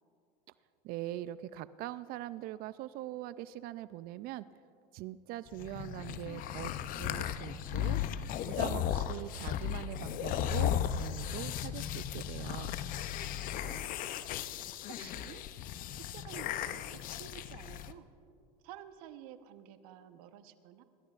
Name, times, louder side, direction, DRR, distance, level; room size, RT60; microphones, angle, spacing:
voice 1, 0.8-4.5 4.9-8.0 8.5-12.8, right 15 dB, 50° right, 16 dB, 0.4 m, -42 dB
sound 1, 5.5-17.9, left 10 dB, 45° left, 0.6 m, -36 dB
voice 2, 13.1-13.9 14.9-15.4 15.9-18.1 18.6-20.8, right 11 dB, 70° right, 10 dB, 1.0 m, -51 dB
26.0 x 13.0 x 2.5 m, 2.5 s
supercardioid pair, 105°, 20 cm